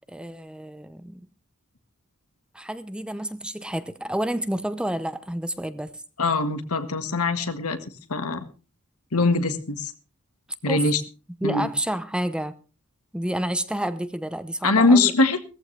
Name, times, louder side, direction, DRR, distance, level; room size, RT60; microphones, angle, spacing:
voice 1, 0.1-1.3 2.5-6.0 10.7-10.8 11.4-12.5 13.1-15.1, right 1 dB, 5° right, 12 dB, 0.7 m, -29 dB
voice 2, 6.2-7.8 8.1-8.4 9.1-9.9 10.6-11.0 11.4-11.7 14.6-15.4, left 3 dB, 85° left, 9 dB, 1.7 m, -22 dB
17.5 x 14.5 x 3.3 m, 0.35 s
head